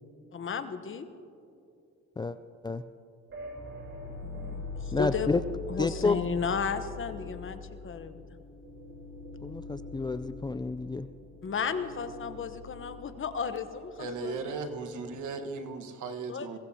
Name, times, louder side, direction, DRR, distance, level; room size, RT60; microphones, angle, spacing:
voice 1, 0.3-1.1 4.2-5.3 5.7-8.2 11.4-14.5 16.3-16.6, left 6 dB, 45° left, 9 dB, 1.0 m, -34 dB
sound 1, 3.3-15.2, left 3 dB, 45° right, 3.6 m, -43 dB
voice 2, 4.9-5.4 5.8-6.2 9.4-11.1, left 3 dB, 15° left, 11 dB, 0.3 m, -29 dB
voice 3, 14.0-16.6, right 4 dB, 75° right, 7 dB, 1.4 m, -37 dB
22.0 x 17.5 x 2.8 m, 2.5 s
cardioid pair, 90°, 30 cm